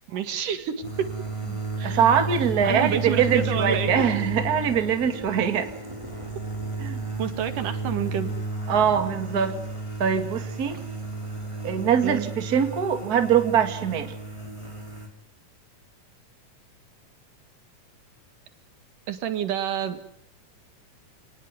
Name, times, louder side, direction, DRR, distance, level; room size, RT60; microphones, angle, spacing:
voice 1, 0.1-1.2 1.8-2.0 2.6-4.1 7.2-8.3 12.0-12.3 19.1-20.0, right 9 dB, 80° right, 9 dB, 3.5 m, -29 dB
sound 1, 0.8-15.1, right 3 dB, 10° right, 4.5 m, -33 dB
voice 2, 1.8-5.7 6.8-7.0 8.7-9.6 10.0-10.8 11.6-14.2, right 8 dB, 30° right, 7 dB, 2.3 m, -23 dB
29.5 x 19.5 x 9.6 m, 0.69 s
omnidirectional pair, 3.7 m